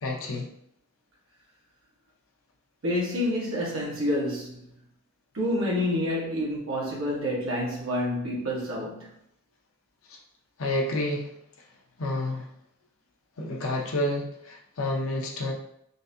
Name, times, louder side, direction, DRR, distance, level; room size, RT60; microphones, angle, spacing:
voice 1, 0.0-0.5 10.1-10.2 10.6-11.3 12.0-12.5 13.4-15.5, left 1 dB, 70° left, 0 dB, 0.7 m, -29 dB
voice 2, 2.8-4.7 5.3-9.1, left 1 dB, 65° right, -4 dB, 1.2 m, -28 dB
3.9 x 2.5 x 2.7 m, 0.74 s
head